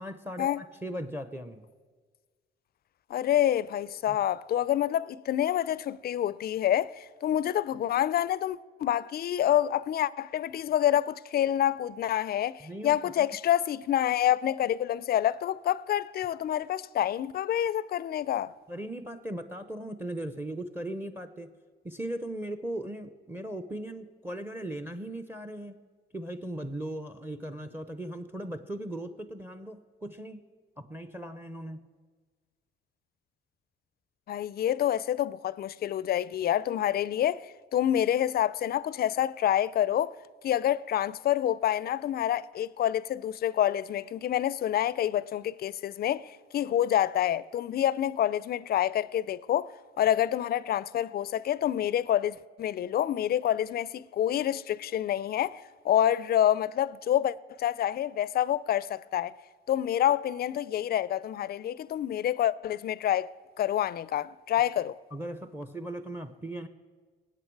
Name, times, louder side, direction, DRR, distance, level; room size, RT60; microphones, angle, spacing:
voice 1, 0.0-1.7 4.1-4.2 12.6-13.4 18.7-21.5 21.8-25.8 26.1-30.5 30.8-31.9 65.1-66.7, right 1 dB, 10° right, 0.7 m, -38 dB
voice 2, 3.1-18.5 34.3-40.2 40.4-59.3 59.7-63.3 63.6-65.0, left 11 dB, 50° left, 0.4 m, -27 dB
20.5 x 8.5 x 4.6 m
cardioid pair, 90°, 20 cm